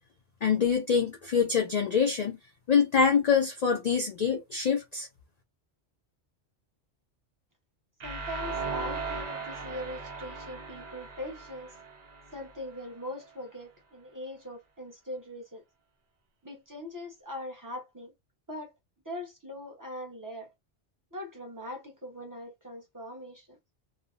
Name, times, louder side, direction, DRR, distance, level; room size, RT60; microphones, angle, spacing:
voice 1, 0.4-2.4 2.7-5.1, left 6 dB, 55° left, 0.5 m, -25 dB
voice 2, 8.0-11.8 12.3-15.6 16.4-18.1 18.5-18.7 19.0-20.5 21.1-23.6, left 1 dB, 20° right, 0.9 m, -41 dB
sound 1, 8.0-12.9, right 4 dB, 45° right, 0.7 m, -38 dB
3.0 x 2.1 x 2.5 m
omnidirectional pair, 1.2 m